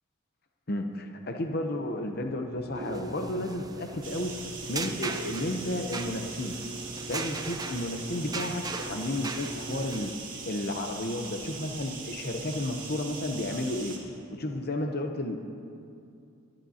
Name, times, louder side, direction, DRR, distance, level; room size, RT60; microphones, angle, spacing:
voice 1, 0.7-4.4 4.7-6.6 7.1-10.1 10.5-14.0 14.3-15.4, left 1 dB, 45° left, 4 dB, 0.8 m, -32 dB
sound 1, 2.6-10.1, right 3 dB, 20° right, 0.5 m, -38 dB
sound 2, 4.0-14.0, right 5 dB, 40° right, 2.0 m, -41 dB
24.0 x 12.0 x 2.8 m, 2.5 s
head